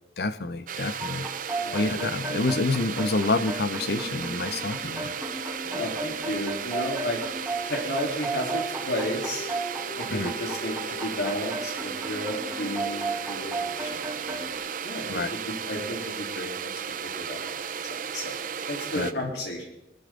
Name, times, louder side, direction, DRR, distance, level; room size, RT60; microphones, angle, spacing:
voice 1, 0.2-1.3 1.7-5.2 10.1-10.3 15.1-15.3 18.9-19.3, left 3 dB, 60° left, 13 dB, 0.7 m, -28 dB
sound 1, 0.7-19.1, right 7 dB, 50° right, 0.6 m, -35 dB
sound 2, 1.0-14.6, right 2 dB, 5° right, 4.1 m, -35 dB
voice 2, 5.6-7.2 7.6-9.5 10.0-14.5 14.8-16.7 17.2-17.6 17.9-18.4 18.7-19.6, left 1 dB, 80° left, -2 dB, 3.7 m, -33 dB
21.5 x 13.0 x 3.9 m, 0.83 s
head